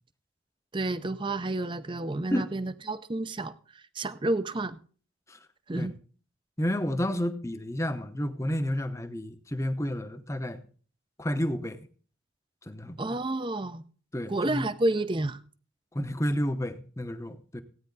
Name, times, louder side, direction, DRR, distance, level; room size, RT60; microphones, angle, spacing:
voice 1, 0.7-4.8 5.7-5.9 13.0-13.8 14.3-15.4, right 2 dB, 25° right, 0.5 m, -30 dB
voice 2, 6.6-10.6 11.2-11.8 12.7-13.2 14.1-14.6 15.9-17.6, equal, 15° left, 0.8 m, -31 dB
15.5 x 9.5 x 4.0 m
head